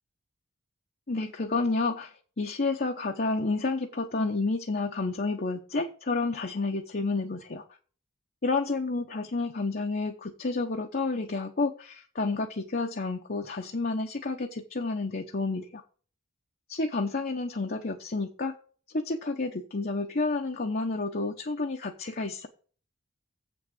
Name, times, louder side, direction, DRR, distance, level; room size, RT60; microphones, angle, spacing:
voice 1, 1.1-7.6 8.4-15.8 16.7-18.5 18.9-22.5, left 3 dB, 45° left, 2 dB, 0.9 m, -30 dB
8.0 x 6.2 x 7.6 m, 0.40 s
head